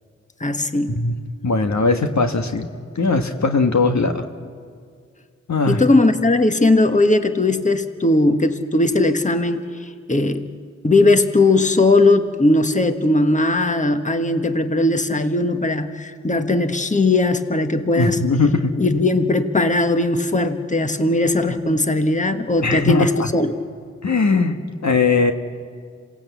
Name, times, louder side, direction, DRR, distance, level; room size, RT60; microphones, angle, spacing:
voice 1, 0.4-1.0 5.7-10.5 10.8-18.2 18.8-23.5, left 2 dB, 25° left, 7 dB, 1.4 m, -18 dB
voice 2, 1.4-2.7 2.9-4.3 5.5-5.8 18.0-18.7 22.6-23.3 24.0-25.3, left 3 dB, 65° left, 6 dB, 1.5 m, -19 dB
27.0 x 18.0 x 8.3 m, 2.1 s
cardioid pair, 50°, 30 cm